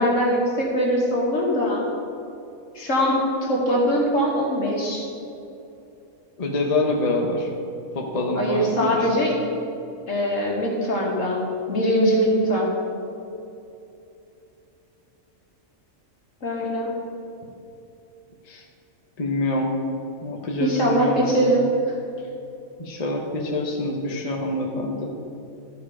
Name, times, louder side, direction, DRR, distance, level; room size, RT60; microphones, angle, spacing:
voice 1, 0.0-1.9 2.7-5.1 8.4-9.4 10.1-11.4 11.7-12.7 16.4-16.9 20.6-21.7, equal, 65° left, -3 dB, 2.1 m, -22 dB
voice 2, 6.4-7.5 7.9-9.1 18.5-18.6 19.2-19.8 20.2-21.5 22.8-25.1, left 2 dB, 35° left, 0 dB, 0.9 m, -26 dB
13.0 x 5.0 x 4.9 m, 2.7 s
omnidirectional pair, 1.4 m